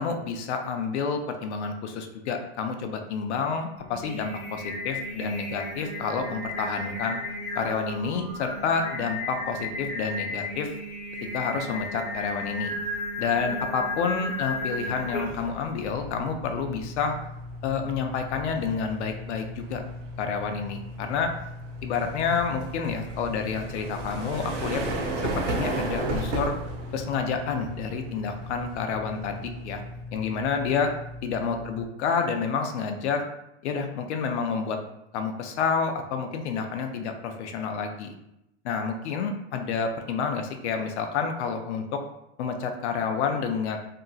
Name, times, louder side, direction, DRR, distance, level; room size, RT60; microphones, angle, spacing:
voice 1, 0.0-7.2 7.5-10.7 11.3-12.8 13.2-17.2 17.6-19.8 20.2-21.3 21.8-24.8 25.2-26.5 26.9-29.8 30.1-30.9 31.2-33.2 33.6-34.8 35.1-38.2 38.6-42.0 42.4-43.8, left 5 dB, 75° left, 5 dB, 0.5 m, -29 dB
Singing, 3.8-15.6, left 1 dB, 30° left, 0.8 m, -34 dB
sound 1, 12.6-12.9 13.3-30.0, right 2 dB, 75° right, 0.8 m, -36 dB
sound 2, 15.8-31.8, left 2 dB, 5° left, 1.0 m, -40 dB
2.8 x 2.5 x 2.3 m, 0.85 s
supercardioid pair, 155°, 35 cm